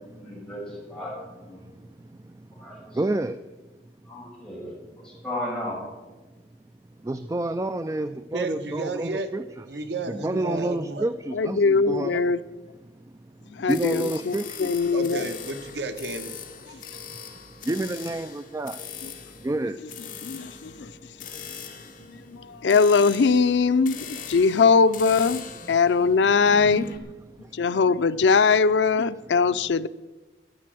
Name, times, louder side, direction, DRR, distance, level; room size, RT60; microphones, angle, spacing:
voice 1, 0.1-1.6 2.5-3.0 4.1-4.7 5.0-5.9, left 1 dB, 5° left, -5 dB, 6.3 m, -35 dB
voice 2, 1.6-3.4 7.0-12.3 13.2-14.8 17.1-17.2 17.6-18.9 19.4-19.8 20.1-20.4 22.1-22.2 26.0-26.1 27.3-27.6, right 1 dB, 20° right, 11 dB, 0.4 m, -30 dB
voice 3, 8.3-9.3 9.7-11.1 14.9-16.4 16.7-16.8, right 3 dB, 75° right, 8 dB, 1.2 m, -32 dB
voice 4, 11.3-12.4 13.5-15.3 16.7-16.8 19.0-19.1 20.2-20.9 22.1-25.4 25.7-26.9 27.5-29.9, left 4 dB, 90° left, 15 dB, 0.5 m, -21 dB
sound 1, 13.7-27.0, left 5 dB, 50° left, 2.0 m, -40 dB
13.5 x 10.5 x 7.6 m, 1.2 s
head